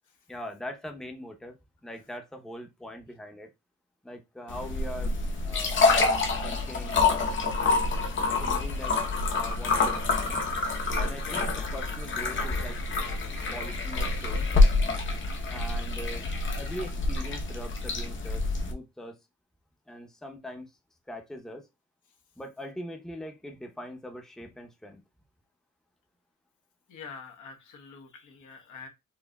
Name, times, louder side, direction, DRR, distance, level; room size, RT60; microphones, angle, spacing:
voice 1, 0.3-1.6 1.8-3.5 4.0-5.1 5.4-6.0 6.4-7.4 8.4-9.0 9.3-10.4 10.9-12.8 13.5-14.5 15.5-16.3 16.5-19.2 19.9-20.7 21.1-21.7 22.4-25.0, equal, ahead, 0.7 m, -41 dB
sound 1, 4.5-18.7, left 3 dB, 40° left, 0.8 m, -27 dB
voice 2, 26.9-28.9, left 5 dB, 75° left, 1.2 m, -46 dB
4.5 x 2.5 x 2.2 m
cardioid pair, 90°, 30 cm